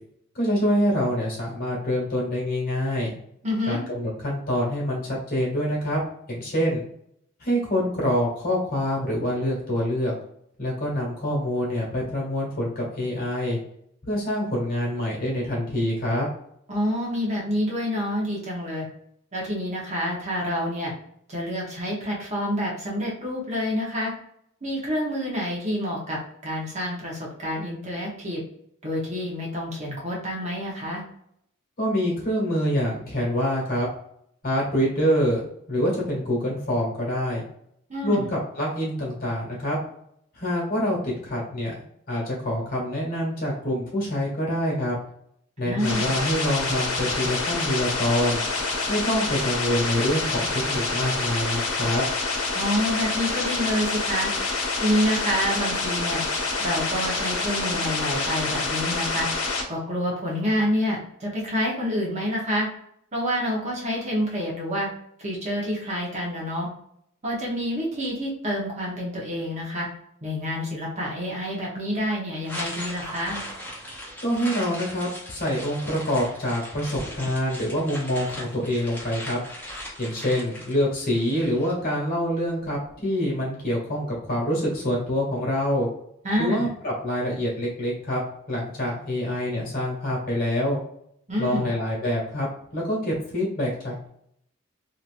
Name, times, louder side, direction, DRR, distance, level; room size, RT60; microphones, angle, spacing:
voice 1, 0.3-3.1 3.7-6.0 6.3-6.8 7.4-10.1 10.6-13.6 14.0-16.3 31.8-33.9 34.4-35.4 35.7-37.4 38.0-39.8 40.3-41.7 42.1-45.0 45.6-48.4 48.9-52.0 74.2-79.4 80.0-85.9 86.4-88.2 88.5-90.8 91.4-94.1, equal, 45° left, -4 dB, 1.4 m, -26 dB
voice 2, 3.4-3.8 16.7-18.9 19.3-20.9 21.3-24.1 24.6-28.4 28.8-31.0 37.9-38.3 45.6-46.1 52.5-54.3 54.8-56.2 56.6-59.3 59.7-62.7 63.1-64.9 65.2-66.7 67.2-69.9 70.2-73.4 86.2-86.7 91.3-91.7, equal, 35° right, -3 dB, 1.0 m, -28 dB
sound 1, 45.8-59.6, left 3 dB, 90° left, 0.9 m, -27 dB
sound 2, 72.4-81.7, equal, 10° left, 1.0 m, -38 dB
3.0 x 2.8 x 2.5 m, 0.71 s
head